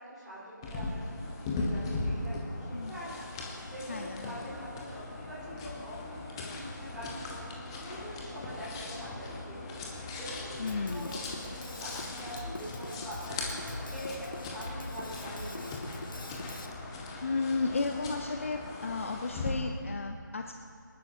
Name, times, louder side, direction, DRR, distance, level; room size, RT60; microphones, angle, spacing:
voice 1, 0.0-16.0, equal, 5° right, -14 dB, 3.6 m, -44 dB
sound 1, 0.6-19.5, left 2 dB, 15° left, 0.9 m, -39 dB
voice 2, 3.9-4.4 10.6-11.2 17.2-20.5, left 4 dB, 40° left, 5 dB, 0.6 m, -33 dB
Drum kit, 10.7-16.7, left 2 dB, 80° left, 1.3 m, -43 dB
26.0 x 11.5 x 2.7 m, 2.3 s
figure-of-eight pair, 165°, 11 cm